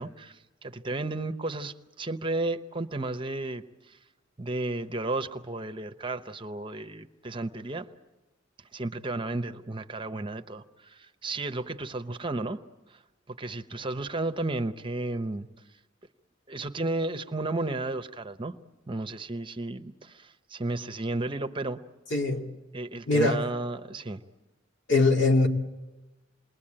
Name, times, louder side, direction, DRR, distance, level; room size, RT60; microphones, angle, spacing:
voice 1, 0.0-4.0 4.4-7.9 8.7-12.6 12.9-13.0 13.3-15.5 16.5-18.6 18.9-21.8 22.7-24.2, right 2 dB, 25° right, 0.8 m, -33 dB
voice 2, 22.1-22.5 23.1-23.4 24.9-25.5, left 2 dB, 65° left, 2.4 m, -22 dB
28.0 x 21.5 x 8.8 m
head